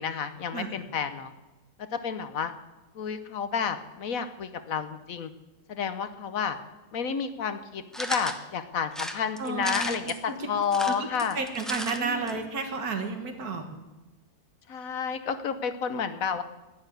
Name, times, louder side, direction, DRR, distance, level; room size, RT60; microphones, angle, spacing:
voice 1, 0.0-1.3 1.9-2.5 2.9-5.3 5.7-6.6 6.9-11.4 12.0-12.3 14.7-16.4, left 6 dB, 65° left, 10 dB, 1.3 m, -30 dB
sound 1, 7.9-8.4 8.9-10.2 10.6-12.0 12.3-12.4 12.6-12.7, equal, ahead, 0.7 m, -35 dB
voice 2, 9.4-10.5 10.9-11.1 11.3-13.7, right 4 dB, 75° right, 5 dB, 2.2 m, -32 dB
11.5 x 10.0 x 9.1 m, 1.1 s
omnidirectional pair, 1.6 m